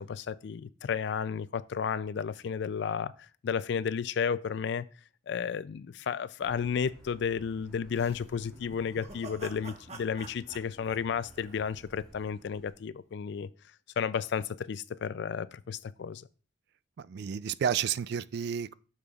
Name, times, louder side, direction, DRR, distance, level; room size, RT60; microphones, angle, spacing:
voice 1, 0.0-4.9 5.3-13.5 14.0-16.2, left 6 dB, 65° left, 0.3 m, -32 dB
Car, 6.4-12.7, equal, 5° left, 3.7 m, -55 dB
sound 1, 7.9-12.1, right 3 dB, 40° right, 1.1 m, -49 dB
voice 2, 17.0-18.7, right 8 dB, 60° right, 0.3 m, -31 dB
8.8 x 6.7 x 2.4 m
head